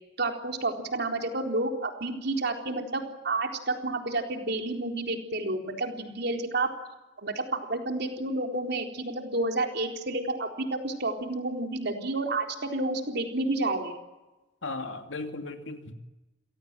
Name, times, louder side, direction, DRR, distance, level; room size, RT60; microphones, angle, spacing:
voice 1, 0.2-6.7 7.2-14.0, right 2 dB, 60° right, 3 dB, 4.1 m, -30 dB
voice 2, 14.6-15.9, left 3 dB, 80° left, 6 dB, 2.8 m, -36 dB
29.5 x 17.5 x 9.1 m, 1.1 s
head